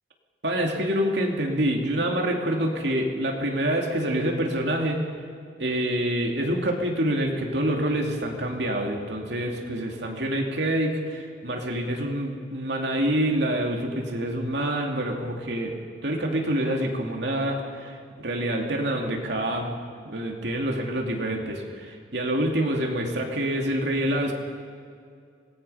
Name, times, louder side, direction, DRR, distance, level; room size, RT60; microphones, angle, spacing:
voice 1, 0.4-5.0 5.6-15.8 16.0-19.7 20.0-24.3, right 1 dB, 70° right, 1 dB, 2.6 m, -26 dB
25.5 x 19.0 x 5.7 m, 2.3 s
head